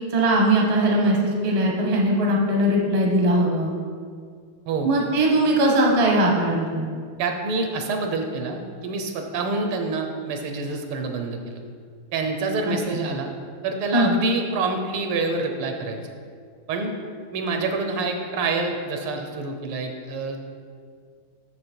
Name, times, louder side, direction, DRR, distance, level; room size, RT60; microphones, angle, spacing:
voice 1, 0.1-3.7 4.8-6.9 12.7-13.0 13.9-14.1, right 1 dB, 30° right, -1 dB, 0.6 m, -20 dB
voice 2, 7.2-11.6 12.1-13.3 13.6-16.0 16.7-16.9 17.3-20.4, right 3 dB, 80° right, 4 dB, 1.7 m, -27 dB
6.7 x 6.6 x 4.4 m, 2.1 s
omnidirectional pair, 2.4 m